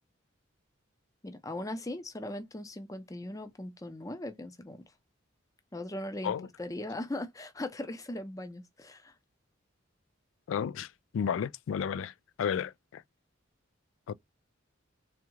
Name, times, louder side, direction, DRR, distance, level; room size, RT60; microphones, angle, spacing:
voice 1, 1.2-4.8 5.7-9.1, left 1 dB, 15° left, 0.5 m, -39 dB
voice 2, 10.5-10.9 11.1-12.1 12.4-13.0 14.1-14.2, left 7 dB, 70° left, 0.3 m, -32 dB
3.5 x 3.5 x 3.0 m
head